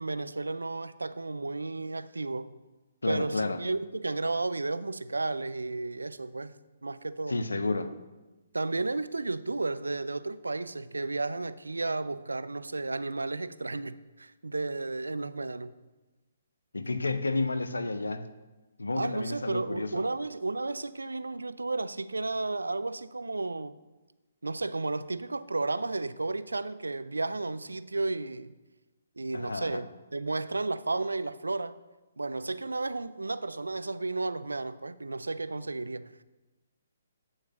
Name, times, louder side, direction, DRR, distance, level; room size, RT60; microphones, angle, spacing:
voice 1, 0.0-2.5 3.1-6.5 6.8-7.4 8.5-15.8 18.9-23.8 24.4-28.5 29.2-31.8 32.2-36.1, right 3 dB, 80° right, 0.4 m, -33 dB
voice 2, 3.0-3.6 7.3-7.9 16.7-18.3 18.8-20.0 29.3-29.8, left 2 dB, 80° left, 0.6 m, -31 dB
9.7 x 3.3 x 6.4 m
figure-of-eight pair, 135°, 0 cm